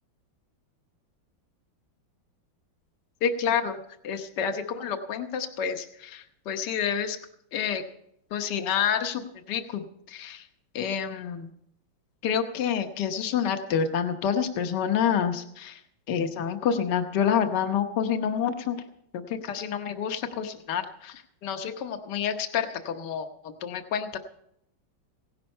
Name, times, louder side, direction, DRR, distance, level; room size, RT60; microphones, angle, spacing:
voice 1, 3.2-3.8 4.0-7.2 7.5-7.8 8.3-10.5 10.7-11.5 12.2-15.8 16.1-18.8 19.1-24.2, left 7 dB, 60° left, 6 dB, 1.6 m, -28 dB
17.0 x 11.5 x 5.5 m, 0.75 s
omnidirectional pair, 2.2 m